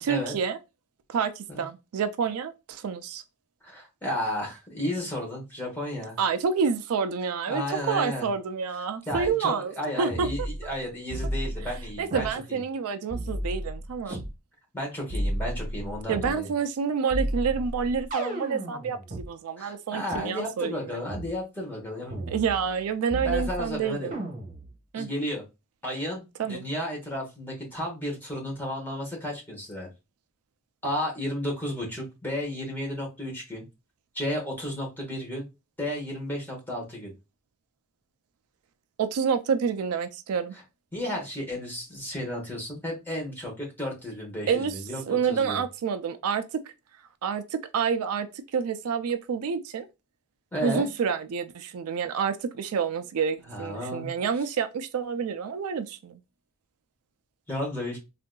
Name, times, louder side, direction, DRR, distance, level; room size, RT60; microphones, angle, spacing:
voice 1, 0.0-0.6 1.1-3.2 6.2-10.3 12.0-14.2 16.1-20.9 22.3-24.2 24.9-25.1 26.4-26.6 39.0-40.5 44.5-44.8 45.1-46.6 47.2-48.3 48.5-49.9 50.6-56.2, right 6 dB, 80° right, 0.4 m, -28 dB
voice 2, 3.6-6.2 7.5-8.3 9.1-12.6 14.1-14.2 14.7-16.5 19.6-22.2 23.2-24.1 24.9-25.4 25.8-29.9 30.8-33.6 34.1-35.4 35.8-37.1 40.9-45.6 50.5-50.9 53.5-54.1 57.5-58.0, left 1 dB, 10° left, 1.1 m, -33 dB
sound 1, 9.1-9.3 10.1-10.8 11.1-12.3 13.1-14.3 15.1-16.3 17.1-19.3 20.1-20.2 21.1-21.3 22.1-22.8 23.1-23.7 24.1-24.7, right 1 dB, 35° right, 1.0 m, -33 dB
3.7 x 2.5 x 2.2 m
head